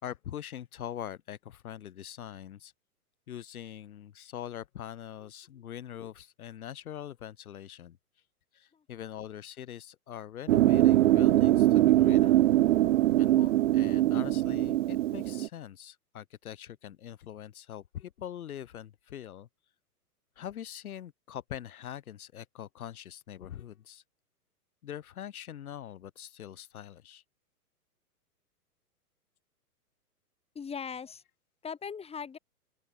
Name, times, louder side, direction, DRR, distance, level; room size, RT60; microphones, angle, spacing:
voice 1, 0.0-2.7 3.3-8.0 8.5-12.4 13.2-19.5 20.4-24.0 24.8-27.2, left 10 dB, 65° left, 4.2 m, -43 dB
sound 1, 10.5-15.5, right 14 dB, 55° right, 0.9 m, -23 dB
voice 2, 30.5-31.2 31.6-32.4, left 6 dB, 10° left, 4.2 m, -39 dB
open air
hypercardioid pair, 125°, 46 cm